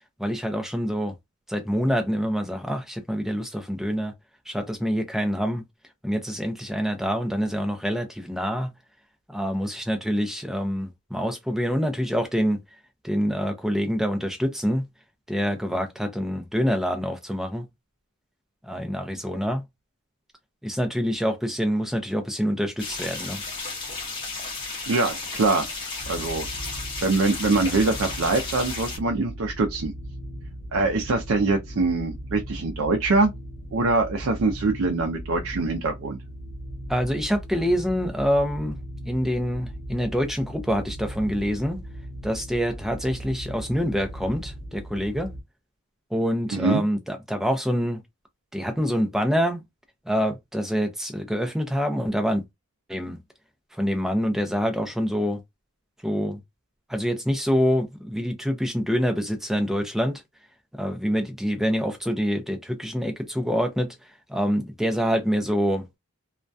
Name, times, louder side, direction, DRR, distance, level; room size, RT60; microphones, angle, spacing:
voice 1, 0.2-1.1 1.5-4.1 4.5-5.6 6.0-8.7 9.3-12.6 13.0-14.9 15.3-17.6 18.6-19.6 20.6-23.4 36.9-38.8 39.0-41.8 42.2-45.3 46.1-48.0 48.5-49.6 50.1-52.4 52.9-53.2 53.7-55.4 56.0-56.4 56.9-60.2 60.7-65.8, equal, ahead, 0.4 m, -26 dB
sound 1, 22.8-29.0, left 3 dB, 20° left, 0.8 m, -34 dB
voice 2, 24.9-25.7 26.1-26.5 27.0-29.9 30.7-33.3 33.7-36.2 46.5-46.8, right 3 dB, 70° right, 0.4 m, -23 dB
sound 2, 26.0-45.4, equal, 55° left, 0.9 m, -38 dB
2.2 x 2.1 x 2.5 m
head